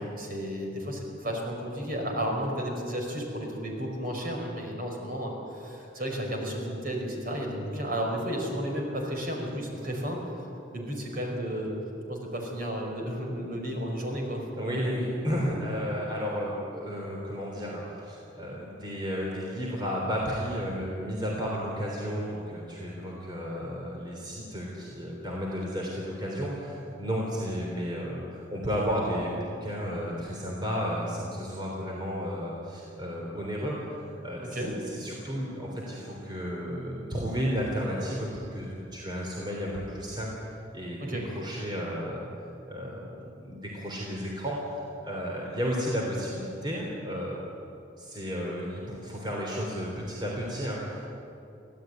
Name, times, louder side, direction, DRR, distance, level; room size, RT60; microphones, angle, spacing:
voice 1, 0.2-10.2 10.7-11.7 12.1-14.5 34.4-34.7 41.0-41.2, equal, 45° right, 1 dB, 5.1 m, -33 dB
voice 2, 14.6-42.3 42.7-47.4 48.0-51.0, equal, 25° right, -3 dB, 3.5 m, -33 dB
25.0 x 16.5 x 9.4 m, 2.7 s
head